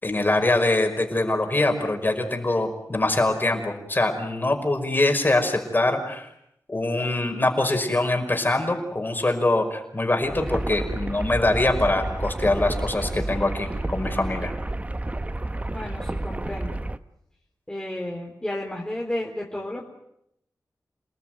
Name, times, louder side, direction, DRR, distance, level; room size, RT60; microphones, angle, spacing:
voice 1, 0.0-6.3 6.7-14.5, left 2 dB, 30° left, 4 dB, 5.4 m, -23 dB
sound 1, 10.2-17.0, right 2 dB, 20° right, 1.0 m, -30 dB
voice 2, 15.7-16.8 17.7-19.9, left 1 dB, 10° left, -2 dB, 3.8 m, -32 dB
29.0 x 19.0 x 9.3 m, 0.78 s
wide cardioid pair, 95°, 6 cm